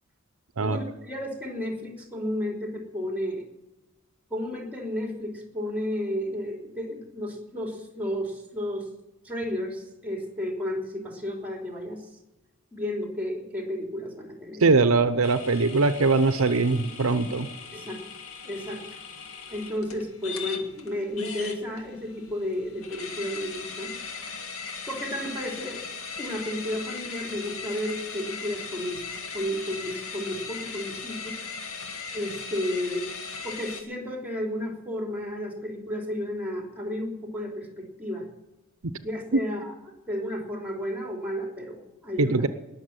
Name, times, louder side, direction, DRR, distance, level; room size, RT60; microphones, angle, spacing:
voice 1, 0.6-3.4 4.3-8.9 9.2-12.0 12.7-14.8 17.7-18.0 18.4-18.8 19.5-24.0 24.9-25.9 26.2-31.4 32.1-33.0 33.4-38.3 39.0-39.7 40.1-42.4, left 1 dB, 10° right, 2 dB, 3.3 m, -32 dB
voice 2, 14.6-17.5 42.2-42.5, right 3 dB, 80° right, 11 dB, 0.8 m, -21 dB
sound 1, 15.2-33.8, left 5 dB, 85° left, 2.0 m, -39 dB
20.0 x 7.3 x 8.0 m, 1.0 s
head